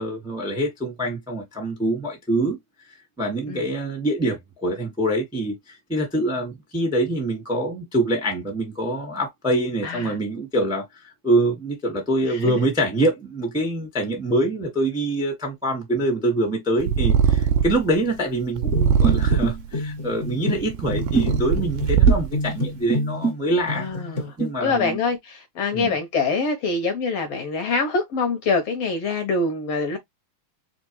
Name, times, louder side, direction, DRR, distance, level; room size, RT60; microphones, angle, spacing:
voice 1, 0.0-2.6 2.9-23.9 24.4-25.0 25.7-25.9, right 1 dB, 5° right, 0.4 m, -25 dB
voice 2, 9.8-10.1 12.2-12.6 23.6-24.3 24.6-30.0, left 4 dB, 65° left, 1.7 m, -25 dB
Purr, 16.8-17.9 18.6-19.7 20.4-22.5, right 7 dB, 85° right, 1.3 m, -20 dB
sound 1, 18.7-23.4 23.7-24.5, right 1 dB, 45° left, 0.9 m, -26 dB
4.4 x 3.2 x 3.0 m
omnidirectional pair, 3.3 m